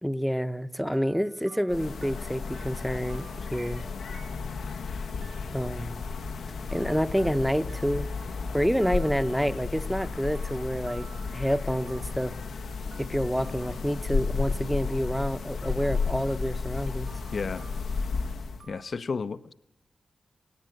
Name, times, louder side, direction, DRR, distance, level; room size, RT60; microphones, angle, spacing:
voice 1, 0.0-3.8 5.5-6.1 6.7-8.1 8.5-12.3 13.0-17.1, equal, ahead, 0.8 m, -28 dB
sound 1, 0.8-14.6 17.1-18.9, right 6 dB, 75° right, 1.7 m, -54 dB
sound 2, 1.7-18.6, left 4 dB, 90° left, 1.2 m, -33 dB
voice 2, 17.3-17.7 18.7-19.5, left 4 dB, 60° left, 0.7 m, -32 dB
20.0 x 17.5 x 9.0 m
wide cardioid pair, 90°, 0 cm